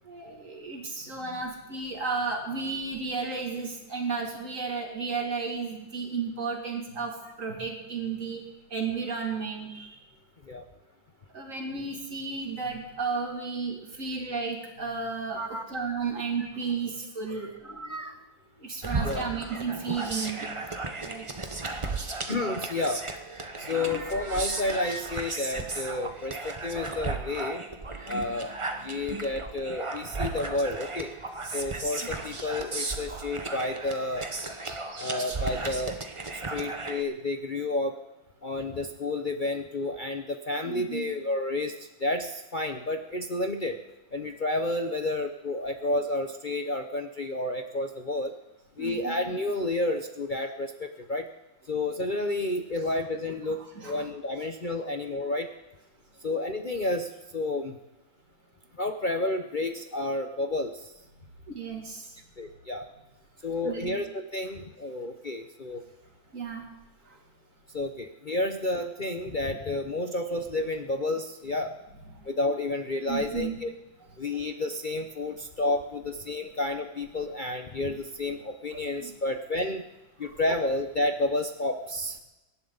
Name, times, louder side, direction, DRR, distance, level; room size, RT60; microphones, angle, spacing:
voice 1, 0.0-8.4 8.7-10.0 11.3-18.0 18.6-20.5 21.0-21.3 23.6-24.7 26.7-26.8 34.4-35.1 40.6-41.1 48.8-49.2 53.5-54.1 61.5-62.2 63.6-64.0 66.3-66.7 67.1-67.2 72.1-72.3 73.1-73.6 78.7-79.1 80.2-80.4, right 4 dB, 40° right, 1 dB, 2.9 m, -34 dB
voice 2, 16.4-16.8 17.8-18.2 19.0-19.2 22.1-23.0 23.6-27.6 28.1-28.5 28.8-31.1 31.5-34.2 35.0-36.0 36.5-37.9 38.4-41.7 42.0-43.8 44.1-48.3 48.8-51.3 51.7-55.5 56.2-57.8 58.8-60.7 62.4-62.9 63.4-65.8 67.7-71.7 72.3-73.7 74.2-79.8 80.2-82.2, left 2 dB, 45° left, 5 dB, 0.6 m, -30 dB
sound 1, 18.8-37.0, right 3 dB, 25° right, 0.6 m, -35 dB
24.0 x 11.5 x 4.0 m, 0.98 s
omnidirectional pair, 2.0 m